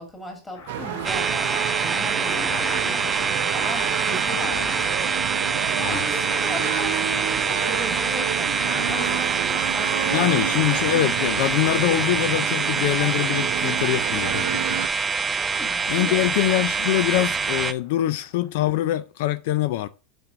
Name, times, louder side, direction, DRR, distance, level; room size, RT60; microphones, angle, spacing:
voice 1, 0.0-3.1 3.5-5.0 5.8-10.6 15.4-16.3, left 1 dB, 10° left, 2.3 m, -37 dB
sound 1, 0.5-13.8 14.1-14.8 15.1-15.9 16.2-18.5, left 4 dB, 80° left, 3.3 m, -40 dB
sound 2, 0.7-14.9, right 12 dB, 75° right, 0.5 m, -30 dB
sound 3, 1.0-17.7, right 5 dB, 15° right, 0.4 m, -25 dB
voice 2, 10.1-14.6 15.9-19.9, left 14 dB, 65° left, 0.4 m, -24 dB
5.8 x 5.3 x 5.0 m
supercardioid pair, 165°, 0 cm